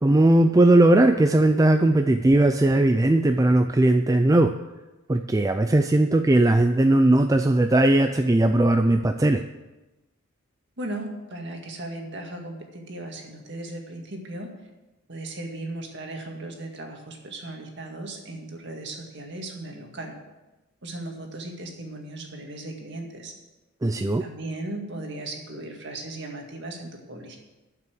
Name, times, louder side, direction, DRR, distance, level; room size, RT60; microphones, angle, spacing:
voice 1, 0.0-4.5 5.1-9.4 23.8-24.2, right 1 dB, 15° right, 7 dB, 0.3 m, -18 dB
voice 2, 10.8-14.5 15.1-20.2 20.8-23.3 24.2-27.4, right 2 dB, 50° right, 2 dB, 2.0 m, -37 dB
12.0 x 6.0 x 7.8 m, 1.1 s
head